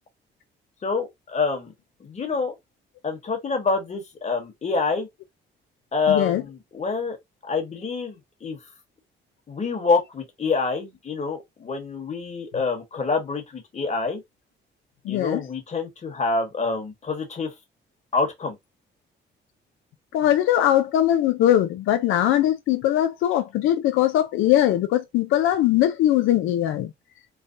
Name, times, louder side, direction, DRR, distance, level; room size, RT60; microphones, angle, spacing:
voice 1, 0.8-1.7 2.0-2.5 3.0-5.1 5.9-7.2 7.5-8.6 9.5-14.2 15.1-17.5 18.1-18.6, left 4 dB, 35° left, 1.2 m, -26 dB
voice 2, 6.1-6.4 15.1-15.4 20.1-26.9, left 12 dB, 85° left, 0.4 m, -21 dB
3.3 x 2.1 x 2.6 m
cardioid pair, 90°, 20 cm